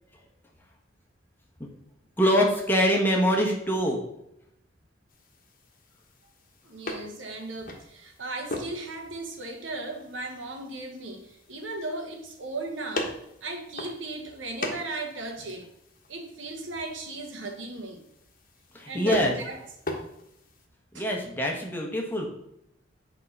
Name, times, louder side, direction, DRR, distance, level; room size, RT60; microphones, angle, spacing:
voice 1, 2.2-4.0 18.7-19.3 20.9-22.3, equal, 10° left, -1 dB, 1.2 m, -24 dB
sound 1, 5.1-20.7, left 2 dB, 45° left, 1.3 m, -41 dB
voice 2, 6.6-15.7 16.1-18.0 18.9-19.6 20.9-21.1, right 2 dB, 85° right, 3 dB, 1.3 m, -37 dB
8.4 x 3.7 x 5.3 m, 0.81 s
head